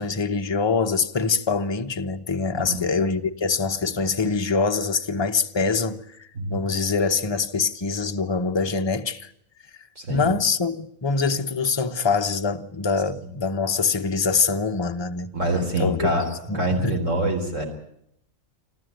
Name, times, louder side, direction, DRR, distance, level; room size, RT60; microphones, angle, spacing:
voice 1, 0.0-9.3 10.1-15.3 15.8-16.1 16.5-17.0, left 4 dB, 25° left, 0.8 m, -24 dB
voice 2, 10.0-10.4 15.3-16.3 16.5-17.6, right 1 dB, 60° right, 4.1 m, -25 dB
25.5 x 14.0 x 9.2 m
omnidirectional pair, 1.4 m